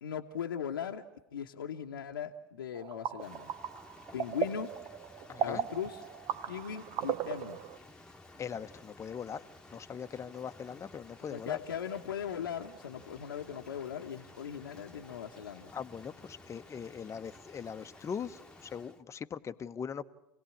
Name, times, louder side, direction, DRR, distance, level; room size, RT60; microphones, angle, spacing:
voice 1, 0.0-1.0 1.3-3.5 4.1-4.7 5.4-6.0 6.5-7.6 11.3-15.7, left 8 dB, 80° left, 2 dB, 1.1 m, -39 dB
sound 1, 2.7-7.8, right 9 dB, 45° right, 1.0 m, -37 dB
Rain, 3.2-19.0, left 2 dB, 5° left, 1.5 m, -55 dB
voice 2, 5.3-5.7 8.4-9.4 9.7-11.6 15.7-20.0, left 7 dB, 25° left, 10 dB, 1.0 m, -41 dB
27.5 x 17.5 x 8.6 m, 0.94 s
hypercardioid pair, 85°, 12 cm